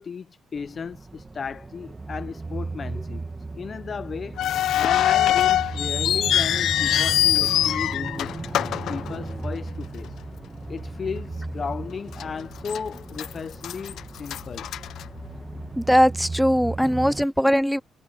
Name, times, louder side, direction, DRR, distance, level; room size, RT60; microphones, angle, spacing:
voice 1, 0.0-3.3 3.5-4.4 4.8-8.3 8.9-10.1 10.7-14.7, left 6 dB, 45° left, 0.9 m, -34 dB
sound 1, 0.6-17.2, right 3 dB, 20° right, 2.3 m, -36 dB
sound 2, 4.4-9.7 10.0-10.1 10.8-11.0 11.5-11.6 12.2-12.8 13.1-15.6, left 12 dB, 75° left, 0.5 m, -23 dB
voice 2, 15.8-17.8, equal, ahead, 0.5 m, -20 dB
cardioid pair, 90°, 0 cm